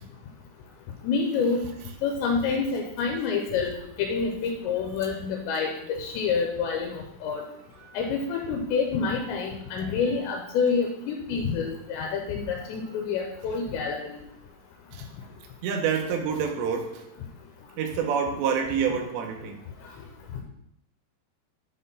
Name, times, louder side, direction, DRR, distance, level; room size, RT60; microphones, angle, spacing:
voice 1, 1.0-1.7 2.0-3.7 4.0-7.4 7.9-14.2 20.4-20.5, left 5 dB, 85° left, 1 dB, 3.1 m, -27 dB
voice 2, 15.6-17.1 17.8-19.6, right 7 dB, 80° right, 4 dB, 3.1 m, -27 dB
8.3 x 4.4 x 5.4 m, 0.79 s
omnidirectional pair, 5.0 m